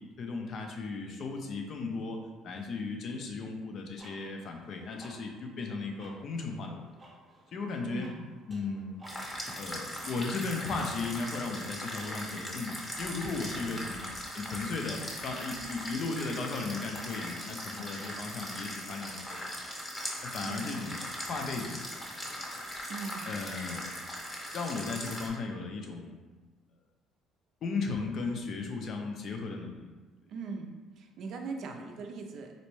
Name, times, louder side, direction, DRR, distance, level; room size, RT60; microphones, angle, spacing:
voice 1, 0.2-2.2 2.4-6.8 7.5-8.1 8.5-9.0 9.6-14.1 14.3-19.4 20.3-21.0 21.3-22.3 23.3-23.9 24.5-26.2 27.6-29.9, left 4 dB, 50° left, 3 dB, 0.5 m, -36 dB
sound 1, 4.0-23.5, right 2 dB, 20° right, 0.8 m, -57 dB
voice 2, 7.8-8.2 13.5-13.8 20.4-20.7 22.9-23.3 30.3-30.7 31.0-32.6, right 4 dB, 60° right, 3 dB, 0.4 m, -40 dB
sound 2, 9.0-25.3, equal, 15° left, 0.7 m, -40 dB
4.0 x 2.2 x 3.0 m, 1.3 s
cardioid pair, 115°, 0 cm